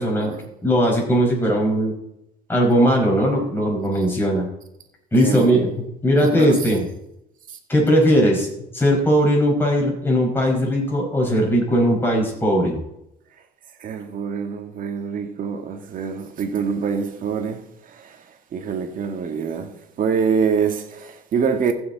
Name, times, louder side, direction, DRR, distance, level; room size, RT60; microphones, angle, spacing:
voice 1, 0.0-0.3 0.6-1.9 2.5-4.5 5.1-5.7 6.0-6.9 7.7-8.5 8.7-12.8, equal, 10° left, 4.9 m, -18 dB
voice 2, 5.2-5.7 6.2-6.6 7.5-7.6 13.8-18.2 18.5-19.7 20.0-21.7, right 6 dB, 55° right, 1.8 m, -25 dB
15.5 x 7.2 x 4.0 m
cardioid pair, 110°, 17 cm